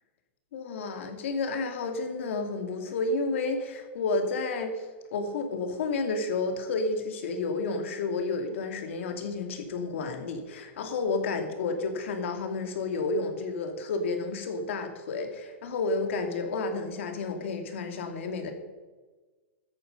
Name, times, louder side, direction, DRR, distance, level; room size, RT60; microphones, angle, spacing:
voice 1, 0.5-18.5, left 3 dB, 70° left, 6 dB, 2.5 m, -31 dB
13.0 x 10.0 x 5.3 m, 1.3 s
hypercardioid pair, 135°, 7 cm